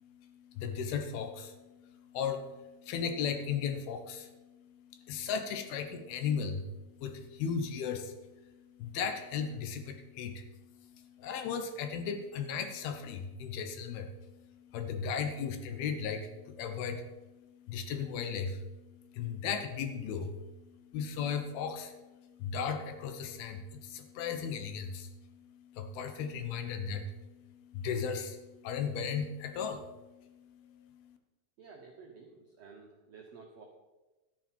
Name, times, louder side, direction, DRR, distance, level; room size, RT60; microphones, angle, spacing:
voice 1, 0.0-6.7 7.0-8.5 8.8-31.2, left 6 dB, 75° left, 7 dB, 2.9 m, -37 dB
voice 2, 31.6-33.7, right 4 dB, 80° right, 1 dB, 1.4 m, -52 dB
12.5 x 10.0 x 4.5 m, 1.1 s
omnidirectional pair, 4.5 m